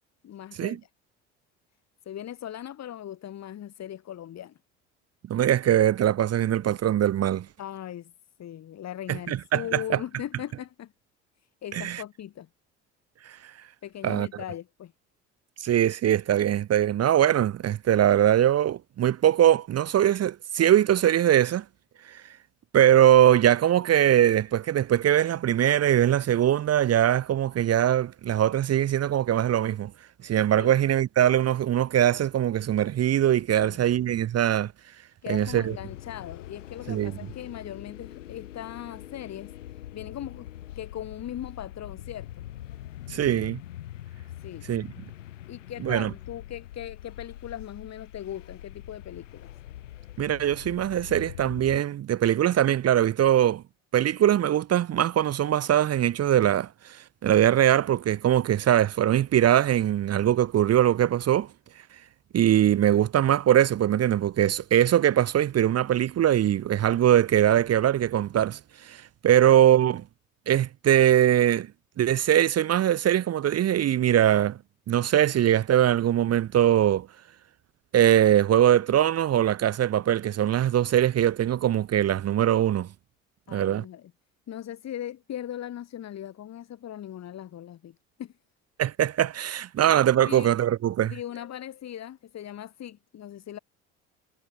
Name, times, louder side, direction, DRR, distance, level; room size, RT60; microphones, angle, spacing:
voice 1, 0.2-0.9 2.0-4.6 7.6-8.1 8.4-10.9 11.6-12.5 13.8-14.9 30.5-30.7 33.6-34.0 35.2-42.3 44.4-44.7 45.5-49.5 83.5-84.1 84.5-88.3 89.8-89.9 90.2-90.5 91.0-93.6, left 11 dB, 45° left, 1.7 m, -39 dB
voice 2, 5.3-7.5 9.1-10.0 11.7-12.0 13.3-13.4 14.0-14.3 15.6-21.6 22.0-22.2 22.7-29.9 30.2-34.7 35.3-35.7 36.9-37.1 43.1-43.6 44.7-44.9 45.8-46.1 50.2-53.6 53.9-61.5 62.3-70.0 70.5-71.7 72.0-74.6 74.9-77.1 77.9-82.9 83.5-83.8 88.8-91.1, right 11 dB, 45° right, 0.9 m, -22 dB
sound 1, 35.3-51.8, left 13 dB, 90° left, 3.2 m, -43 dB
hypercardioid pair, 65°, 36 cm